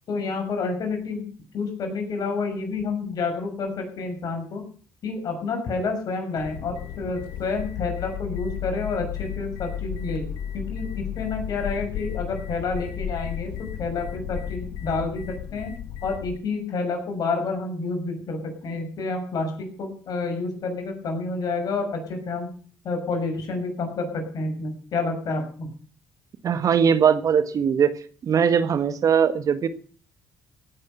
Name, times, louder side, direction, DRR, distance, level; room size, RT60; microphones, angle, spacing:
voice 1, 0.1-1.3 1.5-4.6 5.0-10.3 10.5-15.7 16.0-22.5 22.8-25.7, left 3 dB, 60° left, 5 dB, 6.5 m, -29 dB
sound 1, 6.4-16.4, left 10 dB, 80° left, 1.3 m, -34 dB
voice 2, 26.4-27.9 28.2-29.7, right 7 dB, 55° right, 12 dB, 1.5 m, -20 dB
17.0 x 9.6 x 6.8 m, 0.43 s
hypercardioid pair, 55°, 7 cm